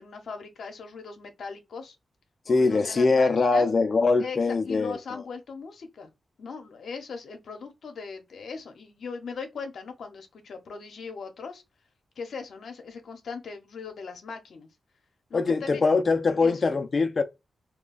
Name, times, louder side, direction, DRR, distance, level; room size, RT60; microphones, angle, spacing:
voice 1, 0.0-1.9 2.4-3.7 4.2-6.1 6.4-11.6 12.2-14.7 15.3-15.8 16.4-16.6, left 5 dB, 75° left, 0.9 m, -39 dB
voice 2, 2.5-5.0 15.3-17.2, left 3 dB, 50° left, 0.6 m, -22 dB
2.4 x 2.3 x 3.6 m
cardioid pair, 75°, 0 cm